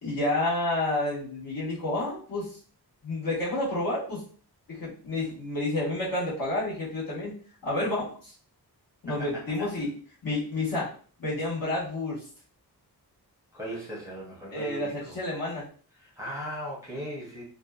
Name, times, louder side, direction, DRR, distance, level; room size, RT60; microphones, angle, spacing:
voice 1, 0.0-2.5 3.0-4.2 4.7-7.4 7.6-8.3 9.0-9.9 10.2-10.9 11.2-12.2 14.5-15.7, left 2 dB, 55° left, -7 dB, 1.3 m, -30 dB
voice 2, 13.5-15.2 16.0-17.4, equal, 10° right, -6 dB, 0.7 m, -38 dB
2.5 x 2.1 x 2.3 m, 0.42 s
wide cardioid pair, 140°, 40 cm